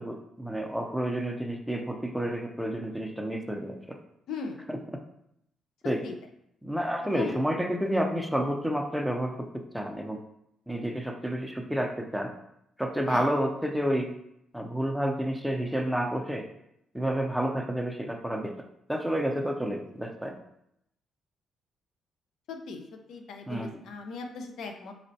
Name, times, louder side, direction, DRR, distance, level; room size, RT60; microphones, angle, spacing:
voice 1, 0.0-4.0 4.7-4.8 5.8-6.0 6.6-10.2 10.7-12.3 12.8-14.1 14.5-16.5 16.9-18.6 18.9-20.4 23.5-23.7, equal, ahead, 4 dB, 0.5 m, -30 dB
voice 2, 4.3-4.6 5.8-6.1 7.0-7.4 13.1-13.3 22.5-24.9, left 4 dB, 80° left, 4 dB, 0.6 m, -38 dB
4.2 x 4.1 x 2.7 m, 0.77 s
cardioid pair, 90°, 0 cm